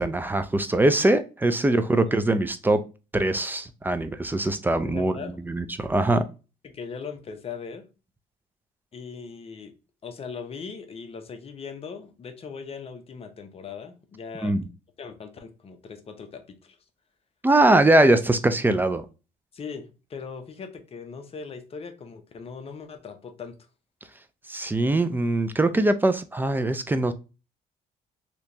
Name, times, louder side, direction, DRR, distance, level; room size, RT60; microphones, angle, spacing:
voice 1, 0.0-2.8 3.1-5.2 5.5-6.2 14.4-14.7 17.4-19.0 24.5-27.1, right 2 dB, 10° right, 10 dB, 0.4 m, -22 dB
voice 2, 4.8-5.4 6.6-7.8 8.9-9.7 10.0-14.5 15.0-16.8 19.5-23.5, left 5 dB, 35° left, 7 dB, 0.7 m, -39 dB
3.3 x 2.9 x 2.6 m, 0.31 s
cardioid pair, 110°, 17 cm